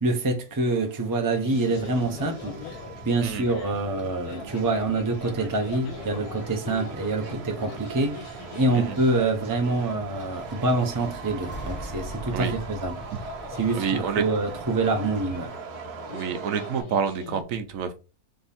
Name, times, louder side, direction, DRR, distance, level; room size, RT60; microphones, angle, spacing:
voice 1, 0.0-2.7 3.0-13.0 13.5-15.5, right 2 dB, 30° right, 0.3 m, -26 dB
Subway metro underground, 0.7-16.8, right 6 dB, 90° right, 1.3 m, -41 dB
sound 1, 1.4-17.4, left 6 dB, 80° left, 1.2 m, -43 dB
sound 2, 1.7-15.5, equal, 10° left, 0.8 m, -43 dB
voice 2, 13.7-14.2 16.1-18.0, right 6 dB, 70° right, 0.9 m, -28 dB
3.6 x 3.3 x 4.1 m
omnidirectional pair, 1.6 m